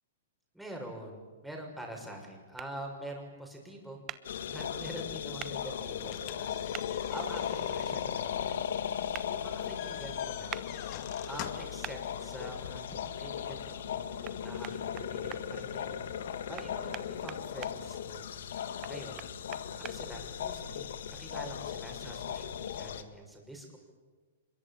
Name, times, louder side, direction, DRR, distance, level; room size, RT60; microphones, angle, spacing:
voice 1, 0.5-4.0 4.5-6.5 6.8-8.6 9.2-10.7 11.3-14.1 14.3-18.2 18.8-19.3 19.8-23.8, right 1 dB, ahead, 0 dB, 6.7 m, -45 dB
sound 1, 2.6-2.7 4.1-4.2 5.4-5.5 6.7-6.9 9.1-9.3 10.5-10.7 11.8-12.0 14.2-14.4 14.6-15.4 16.6-17.7 18.8-20.0, right 13 dB, 30° right, 1.1 m, -42 dB
sound 2, 4.2-23.0, left 8 dB, 70° left, 1.8 m, -37 dB
sound 3, 6.0-11.8, left 12 dB, 40° left, 2.2 m, -47 dB
24.5 x 22.5 x 8.9 m, 1.4 s
hypercardioid pair, 130°, 0 cm